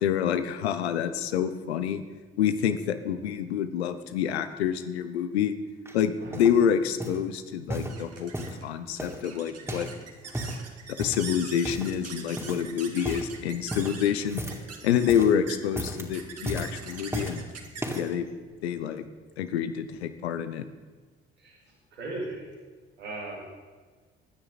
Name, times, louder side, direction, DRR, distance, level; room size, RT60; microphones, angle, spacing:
voice 1, 0.0-2.0 2.4-5.5 5.9-8.3 8.6-9.9 10.9-14.4 14.8-17.4 17.9-18.3 18.6-19.0 19.4-20.7, left 8 dB, 85° left, 11 dB, 0.9 m, -27 dB
sound 1, 5.9-6.6 7.0-7.3 7.7-8.6 9.0-10.0 10.2-10.6 11.0-11.3 11.6-12.1 12.4-12.7 13.0-13.3 13.7-14.7 15.0-15.4 15.7-16.1 16.5-17.4 17.8-18.2 18.8-18.9, right 1 dB, 10° right, 2.8 m, -35 dB
sound 2, 7.4-19.7, right 5 dB, 50° right, 2.1 m, -44 dB
voice 2, 21.9-22.4 23.0-23.6, right 2 dB, 90° right, -6 dB, 2.5 m, -37 dB
23.0 x 9.6 x 4.1 m, 1.4 s
hypercardioid pair, 50°, 32 cm